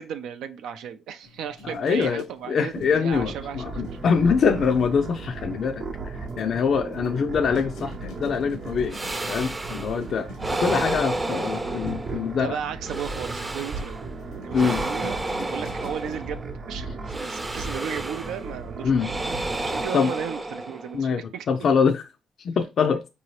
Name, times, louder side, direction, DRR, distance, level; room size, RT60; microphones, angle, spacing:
voice 1, 0.0-3.8 12.3-14.1 14.4-19.2 19.6-21.5, right 8 dB, 85° right, 0.4 m, -35 dB
sound 1, 1.2-16.2, equal, 85° left, 0.8 m, -45 dB
voice 2, 1.6-9.0 9.3-10.3 10.6-12.6 14.5-14.8 18.8-19.1 19.9-20.1 20.9-21.2 21.5-22.1 22.4-23.0, left 6 dB, 60° left, 0.4 m, -24 dB
sound 2, 3.1-19.9, right 3 dB, 60° right, 0.7 m, -36 dB
sound 3, 8.9-10.0 10.4-12.4 12.8-14.0 14.5-16.5 17.1-18.5 18.9-21.1, right 2 dB, 20° right, 0.5 m, -31 dB
4.8 x 2.7 x 3.0 m
cardioid pair, 90°, 0 cm